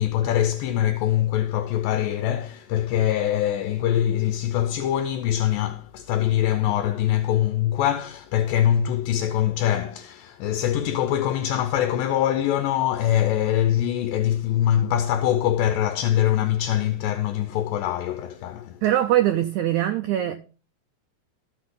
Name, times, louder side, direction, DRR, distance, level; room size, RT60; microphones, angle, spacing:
voice 1, 0.0-18.8, left 11 dB, 80° left, 2.3 m, -23 dB
voice 2, 18.8-20.4, right 13 dB, 90° right, 1.6 m, -22 dB
13.5 x 6.1 x 3.6 m
omnidirectional pair, 4.1 m